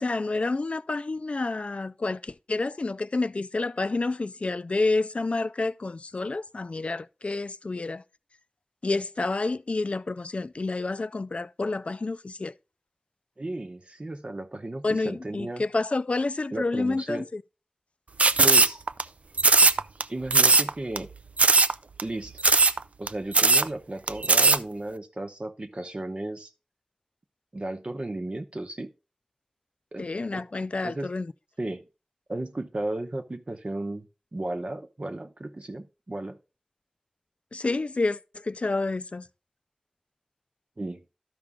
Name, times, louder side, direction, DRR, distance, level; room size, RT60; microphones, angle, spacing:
voice 1, 0.0-8.0 8.8-12.5 14.8-17.4 30.0-31.3 37.5-39.3, left 3 dB, 65° left, 0.3 m, -29 dB
voice 2, 13.4-15.6 16.5-17.3 18.4-18.8 20.1-21.1 22.0-22.3 23.0-26.5 27.5-28.9 29.9-30.4 30.8-31.1 31.6-31.8 32.3-36.4 40.8-41.0, right 2 dB, 60° right, 0.9 m, -34 dB
sound 1, 18.2-19.0 19.4-20.0 20.3-20.7 21.0-21.1 21.4-21.7 22.0-22.1 22.4-22.8 23.1-23.2 23.3-23.7 24.1-24.6, right 3 dB, 85° right, 0.3 m, -18 dB
12.5 x 5.2 x 3.5 m
wide cardioid pair, 45°, 2 cm